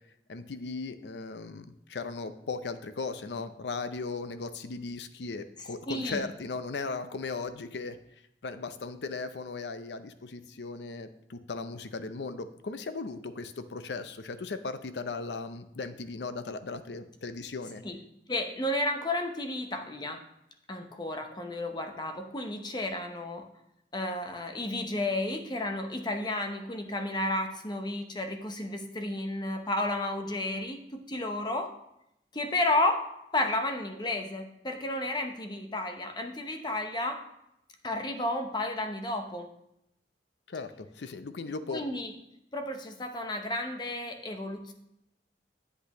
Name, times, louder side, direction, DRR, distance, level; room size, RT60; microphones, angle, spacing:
voice 1, 0.3-8.0 8.4-17.8 40.5-41.8, left 4 dB, 70° left, 11 dB, 0.6 m, -37 dB
voice 2, 5.9-6.2 17.8-18.0 18.3-20.2 20.7-23.5 23.9-31.7 32.3-37.2 37.8-39.5 41.7-42.1 42.5-44.7, left 1 dB, 25° left, 5 dB, 0.8 m, -32 dB
8.2 x 8.1 x 3.0 m, 0.82 s
head